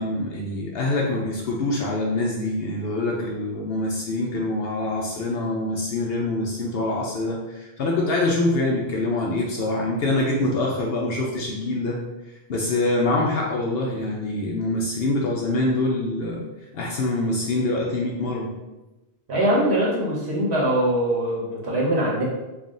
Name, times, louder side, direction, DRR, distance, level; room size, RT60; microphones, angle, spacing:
voice 1, 0.0-12.0 12.5-16.4 16.7-18.5, left 2 dB, 65° left, -2 dB, 0.8 m, -25 dB
voice 2, 19.3-22.2, right 1 dB, 70° right, -4 dB, 1.2 m, -22 dB
3.5 x 2.3 x 3.7 m, 1.1 s
omnidirectional pair, 1.2 m